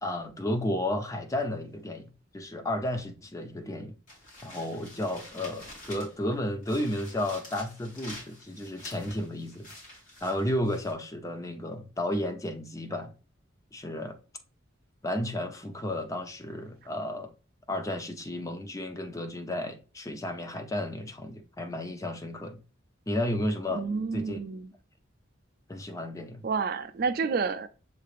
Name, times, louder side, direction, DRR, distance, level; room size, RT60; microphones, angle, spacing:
voice 1, 0.0-4.0 4.4-9.7 10.2-13.1 13.7-14.2 15.0-17.3 17.7-22.6 23.1-23.8 24.1-24.4 25.7-26.4, left 1 dB, 15° left, 0.5 m, -32 dB
sound 1, 4.1-6.3 6.6-10.9, left 1 dB, 40° left, 2.0 m, -48 dB
voice 2, 23.7-24.7 26.4-27.7, right 5 dB, 45° right, 0.3 m, -29 dB
6.6 x 3.2 x 2.4 m
head